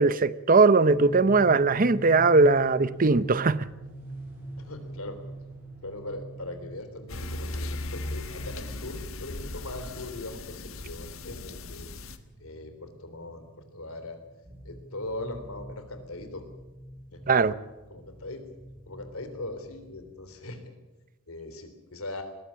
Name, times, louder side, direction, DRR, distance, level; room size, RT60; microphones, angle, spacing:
voice 1, 0.0-3.7 17.3-17.5, right 3 dB, 40° right, 0.7 m, -20 dB
sound 1, 0.9-20.1, right 2 dB, 10° right, 7.5 m, -44 dB
voice 2, 4.6-5.2 5.8-11.9 12.4-13.5 13.7-14.2 14.6-16.5 17.1-17.2 17.9-18.4 18.9-20.7 21.3-22.2, left 2 dB, 90° left, 3.5 m, -40 dB
sound 2, 7.1-12.2, left 2 dB, 70° left, 1.4 m, -37 dB
20.0 x 15.0 x 8.7 m
head